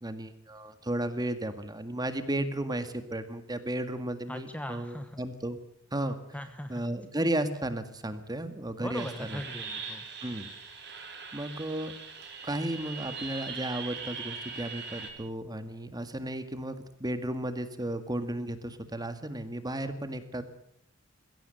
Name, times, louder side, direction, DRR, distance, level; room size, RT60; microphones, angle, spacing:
voice 1, 0.0-5.6 5.9-6.2 6.7-9.4 10.2-10.5 11.0-11.9 12.4-20.4, right 1 dB, 20° right, 10 dB, 1.8 m, -34 dB
voice 2, 4.3-5.2 6.3-6.9 8.8-10.1, left 1 dB, 5° left, 8 dB, 1.2 m, -39 dB
sound 1, 8.9-15.1, right 5 dB, 60° right, 4.7 m, -41 dB
21.5 x 16.0 x 7.9 m, 0.71 s
head